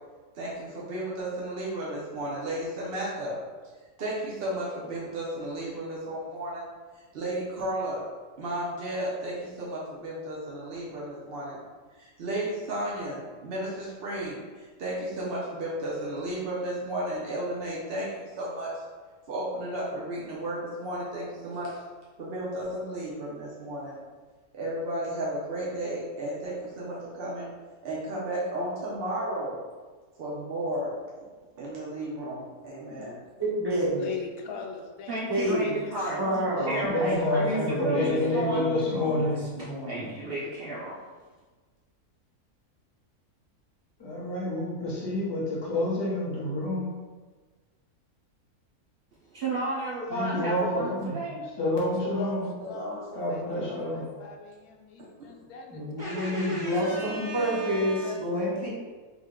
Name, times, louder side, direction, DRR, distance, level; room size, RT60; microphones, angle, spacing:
voice 1, 0.3-3.4 4.0-6.7 7.1-8.0 8.4-11.6 11.9-18.8 19.3-21.8 22.2-23.9 24.5-27.5 27.8-29.6 30.2-30.9 31.6-33.2 52.6-53.3 53.5-53.9 55.2-55.4, right 1 dB, 55° right, -6 dB, 0.7 m, -33 dB
voice 2, 32.7-33.1 33.9-37.3 51.9-55.7 56.0-56.3 57.4-58.6, left 5 dB, 80° left, 2 dB, 1.0 m, -41 dB
voice 3, 33.4-34.0 35.3-40.1 55.7-58.7, equal, 30° right, -7 dB, 0.5 m, -29 dB
voice 4, 35.1-36.3 36.7-38.7 39.6-41.0 49.3-51.5 56.0-58.1, right 2 dB, 85° right, -5 dB, 0.5 m, -33 dB
voice 5, 36.8-39.5 44.0-46.9 50.1-51.2 51.6-52.5 53.1-54.2, left 1 dB, 25° left, -6 dB, 0.7 m, -28 dB
3.5 x 2.2 x 3.6 m, 1.4 s
omnidirectional pair, 1.6 m